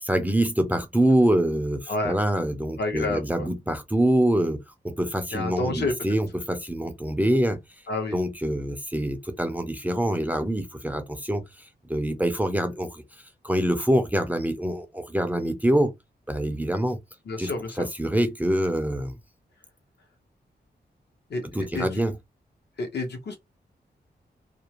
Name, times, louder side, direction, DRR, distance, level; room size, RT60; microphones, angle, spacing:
voice 1, 0.0-7.6 8.1-13.0 13.4-15.9 16.3-17.0 17.4-17.5 17.8-19.1 21.4-22.1, right 1 dB, 10° right, 0.4 m, -25 dB
voice 2, 2.8-3.5 5.3-5.9 7.9-8.2 17.3-17.9 21.3-22.0 22.8-23.4, left 2 dB, 70° left, 0.9 m, -29 dB
2.5 x 2.0 x 2.9 m
wide cardioid pair, 125°, 18 cm